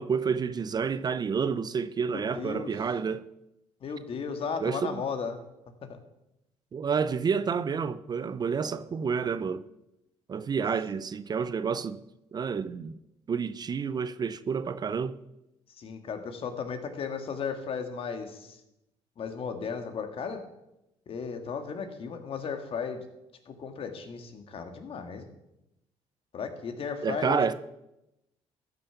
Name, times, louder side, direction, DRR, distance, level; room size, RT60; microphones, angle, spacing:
voice 1, 0.0-3.2 4.6-5.0 6.7-9.6 10.3-12.0 12.3-13.0 13.3-15.1 27.0-27.5, right 6 dB, 35° right, 0.5 m, -29 dB
voice 2, 2.1-2.7 3.8-5.4 5.9-6.0 15.8-18.6 19.2-20.4 21.1-23.0 23.4-25.3 26.3-27.5, left 6 dB, 55° left, 1.7 m, -35 dB
14.0 x 6.8 x 5.7 m
cardioid pair, 100°, 12 cm